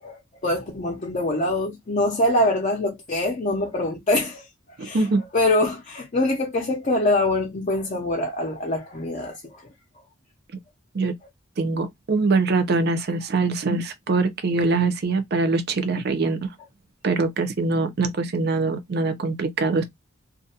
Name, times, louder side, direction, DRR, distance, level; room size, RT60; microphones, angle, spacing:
voice 1, 0.0-4.5 4.8-5.0 5.3-9.7, left 1 dB, 35° left, 0.5 m, -24 dB
voice 2, 4.8-5.2 10.9-11.1 11.6-16.5 17.0-19.8, right 3 dB, 50° right, 0.5 m, -23 dB
2.3 x 2.2 x 2.7 m
head